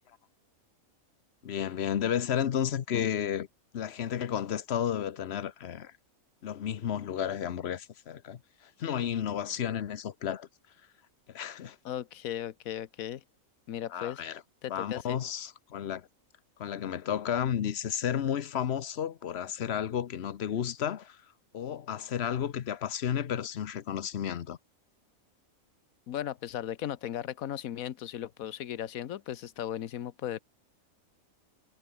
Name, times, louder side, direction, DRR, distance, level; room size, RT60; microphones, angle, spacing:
voice 1, 1.4-3.5 3.7-5.9 6.4-10.5 11.3-11.8 13.9-14.4 14.7-16.1 16.6-21.2 21.5-24.6, left 9 dB, 55° left, 1.0 m, -32 dB
voice 2, 11.8-13.2 13.7-14.2 14.6-15.2 26.1-30.4, left 11 dB, 75° left, 1.3 m, -36 dB
omnidirectional pair, 1.5 m